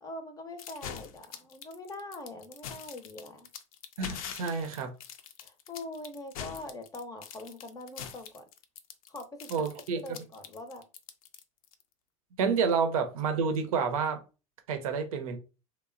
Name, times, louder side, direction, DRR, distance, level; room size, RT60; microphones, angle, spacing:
voice 1, 0.0-3.5 5.4-8.4 9.1-9.7 10.0-10.9, left 2 dB, 20° left, 0.5 m, -43 dB
sound 1, 0.6-11.8, left 8 dB, 80° left, 0.5 m, -43 dB
voice 2, 4.0-4.9 9.5-10.0 12.4-14.2 14.7-15.4, right 5 dB, 85° right, 0.7 m, -29 dB
3.1 x 2.1 x 2.4 m
hypercardioid pair, 100°, 18 cm